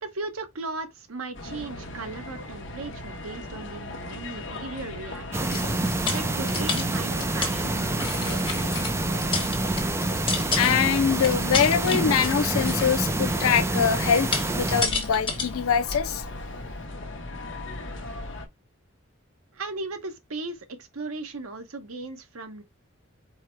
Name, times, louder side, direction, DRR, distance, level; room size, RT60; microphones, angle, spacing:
voice 1, 0.0-5.7 6.1-8.6 19.5-22.6, right 3 dB, 85° right, 0.9 m, -37 dB
sound 1, 1.3-18.5, left 2 dB, 55° left, 1.0 m, -37 dB
sound 2, 5.3-14.8, right 2 dB, 10° right, 0.3 m, -27 dB
sound 3, 5.5-7.5 7.9-8.9 9.2-10.9 11.2-13.1 14.0-15.5 15.9-16.0, left 4 dB, 25° left, 1.3 m, -30 dB
voice 2, 10.4-16.3, left 7 dB, 80° left, 0.4 m, -24 dB
4.8 x 2.1 x 4.5 m
head